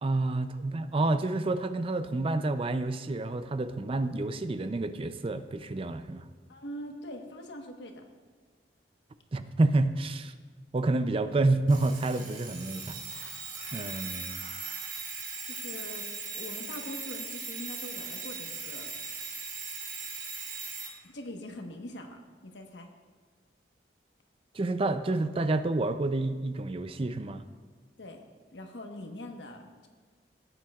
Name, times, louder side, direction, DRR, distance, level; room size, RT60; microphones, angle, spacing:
voice 1, 0.0-6.3 9.3-10.3 10.7-13.4 13.7-14.4 24.5-27.4, right 2 dB, 30° right, 11 dB, 0.4 m, -29 dB
voice 2, 6.5-8.0 15.4-16.0 16.3-18.9 21.1-22.9 28.0-28.2 28.5-29.9, left 1 dB, 85° left, 3 dB, 1.2 m, -42 dB
Alarm, 11.7-20.9, right 4 dB, 50° right, 2.7 m, -39 dB
17.0 x 8.9 x 2.4 m, 1.5 s
head